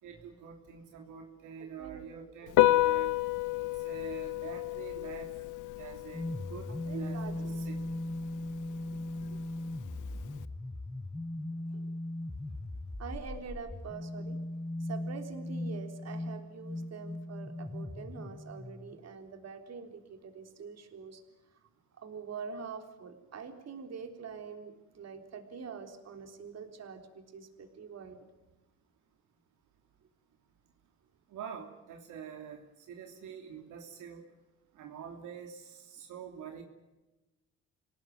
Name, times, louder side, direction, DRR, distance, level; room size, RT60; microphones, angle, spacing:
voice 1, 0.0-3.1 3.6-5.3 5.8-6.7 6.9-7.8 31.3-32.6 32.9-34.2 34.7-36.6, right 7 dB, 85° right, 2 dB, 3.1 m, -46 dB
Piano, 2.5-10.4, left 16 dB, 85° left, 0.9 m, -32 dB
sound 1, 6.1-19.0, left 1 dB, 10° left, 1.0 m, -38 dB
voice 2, 6.9-7.6 8.9-9.3 10.1-10.4 11.7-11.9 13.0-14.4 14.8-21.2 22.0-28.2, right 6 dB, 55° right, 5 dB, 3.7 m, -45 dB
27.0 x 18.0 x 9.5 m, 1.1 s
cardioid pair, 90°, 30 cm